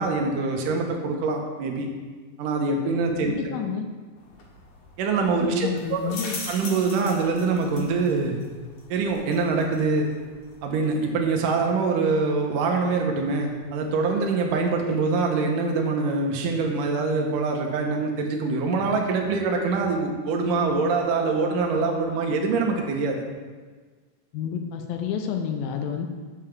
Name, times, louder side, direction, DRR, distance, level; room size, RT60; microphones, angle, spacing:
voice 1, 0.0-1.9 2.4-3.6 5.0-6.1 6.5-8.4 8.9-10.1 10.6-23.2, right 4 dB, 70° right, 2 dB, 2.2 m, -24 dB
voice 2, 3.3-3.9 5.4-6.4 24.3-26.1, left 7 dB, 75° left, 4 dB, 2.3 m, -30 dB
sound 1, 4.2-14.8, left 3 dB, 60° left, 2.4 m, -44 dB
6.8 x 5.7 x 7.3 m, 1.4 s
omnidirectional pair, 4.6 m